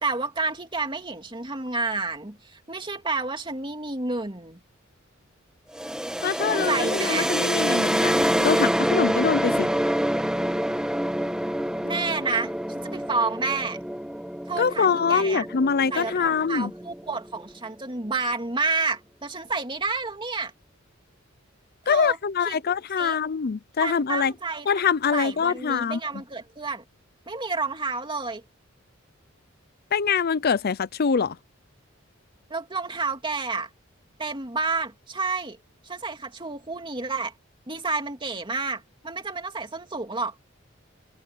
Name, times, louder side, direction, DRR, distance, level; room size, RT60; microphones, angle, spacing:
voice 1, 0.0-4.6 6.5-7.3 11.8-13.8 14.5-15.5 15.9-20.5 21.8-22.2 22.5-22.6 23.0-23.2 23.8-24.7 25.1-26.8 27.3-28.4 32.5-33.7 34.2-35.6 35.8-37.3 37.7-40.3, right 3 dB, 25° right, 2.7 m, -30 dB
sound 1, 5.7-17.4, equal, 5° right, 1.4 m, -27 dB
voice 2, 6.2-9.7 14.6-16.7 21.9-24.3 24.7-26.0 29.9-31.4, left 6 dB, 50° left, 0.5 m, -24 dB
head